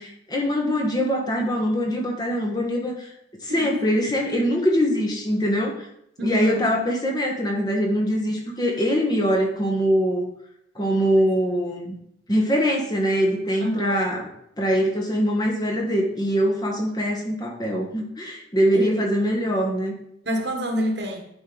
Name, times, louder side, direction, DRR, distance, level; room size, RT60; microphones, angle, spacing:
voice 1, 0.0-3.1 3.4-5.9 6.2-10.3 10.7-12.0 12.3-14.3 14.6-19.9, equal, 20° left, 0 dB, 1.3 m, -23 dB
voice 2, 3.5-3.8 6.2-6.7 10.9-11.2 13.6-14.0 18.7-19.0 20.3-21.2, equal, 65° right, 3 dB, 1.4 m, -28 dB
10.5 x 4.6 x 3.9 m, 0.74 s
head